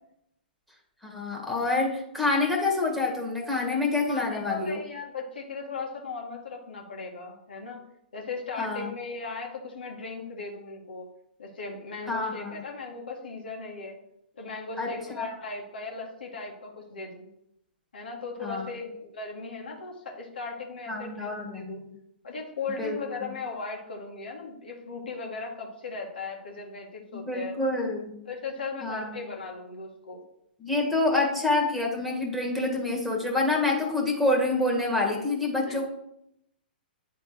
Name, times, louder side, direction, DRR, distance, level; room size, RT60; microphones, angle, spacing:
voice 1, 1.0-4.8 8.6-8.9 12.1-12.6 14.8-15.3 18.4-18.7 20.9-21.8 22.8-23.3 27.2-28.2 28.8-29.2 30.6-35.9, left 2 dB, ahead, 0 dB, 1.7 m, -27 dB
voice 2, 4.1-7.8 8.1-11.1 11.4-13.9 14.3-17.3 17.9-21.8 22.2-27.6 28.2-30.2 35.7-35.8, left 4 dB, 70° left, 0 dB, 1.6 m, -37 dB
9.3 x 3.6 x 4.7 m, 0.77 s
figure-of-eight pair, 115°, 5 cm